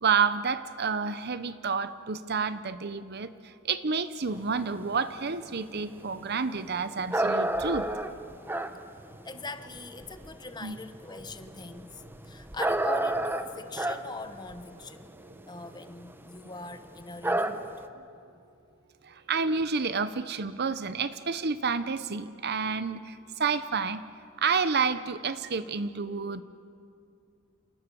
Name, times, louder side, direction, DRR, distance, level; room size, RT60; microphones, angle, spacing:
voice 1, 0.0-3.3 3.6-7.9 10.6-10.8 19.1-24.0 24.4-26.4, right 5 dB, 50° right, 13 dB, 0.9 m, -29 dB
sound 1, 4.3-10.3 10.8-16.1 16.5-16.6 16.8-17.0 17.2-17.9, right 1 dB, 10° right, 1.0 m, -30 dB
voice 2, 9.2-15.1 15.5-17.8 20.0-20.1, left 3 dB, 20° left, 10 dB, 1.1 m, -41 dB
29.0 x 28.0 x 7.0 m, 2.4 s
head